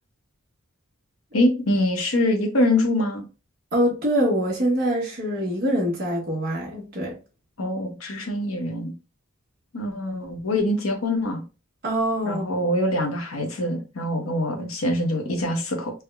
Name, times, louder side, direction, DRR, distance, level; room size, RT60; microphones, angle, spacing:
voice 1, 1.3-3.3 7.6-8.9 9.7-11.4 12.2-15.9, left 1 dB, 75° left, 0.9 m, -24 dB
voice 2, 3.7-7.2 11.8-12.6, equal, 45° right, 1.0 m, -24 dB
3.4 x 2.1 x 3.4 m
head